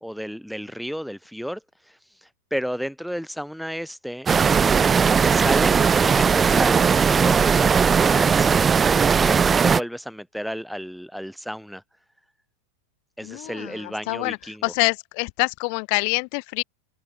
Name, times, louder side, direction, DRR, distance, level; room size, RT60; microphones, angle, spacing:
voice 1, 0.0-1.6 2.5-4.3 5.2-8.7 9.2-11.8 13.2-14.6, equal, ahead, 1.1 m, -32 dB
sound 1, 4.3-9.8, right 6 dB, 20° right, 1.3 m, -18 dB
voice 2, 13.2-16.6, left 40 dB or more, 45° left, 1.2 m, -26 dB
open air
figure-of-eight pair, 90°, 0 cm